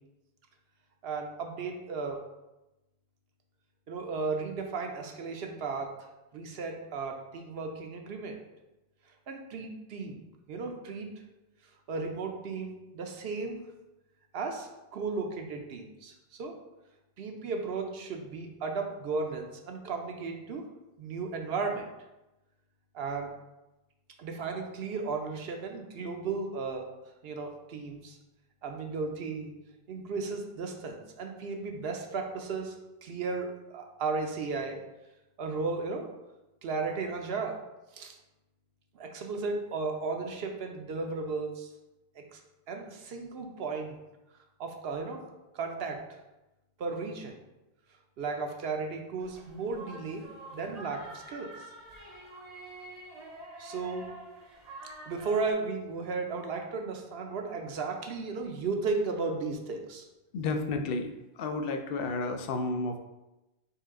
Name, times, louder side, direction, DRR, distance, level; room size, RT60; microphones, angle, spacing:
voice 1, 1.0-2.2 3.9-8.4 9.3-11.1 11.9-13.6 14.3-16.6 17.2-20.7 21.0-21.8 22.9-23.3 24.2-26.8 27.2-28.2 28.6-29.5 29.9-34.8 35.4-36.1 36.6-37.6 37.9-38.2 38.9-41.7 42.1-42.4 42.7-44.0 44.6-45.2 45.5-46.0 46.8-47.3 48.2-50.2 50.5-51.5 53.6-54.1 54.8-60.1, right 4 dB, 70° right, 3 dB, 0.9 m, -35 dB
sound 1, 49.2-55.5, right 1 dB, 45° right, 0.8 m, -47 dB
voice 2, 60.3-61.1 61.4-63.1, left 3 dB, 70° left, 6 dB, 0.7 m, -31 dB
4.4 x 3.2 x 3.7 m, 1.0 s
omnidirectional pair, 1.0 m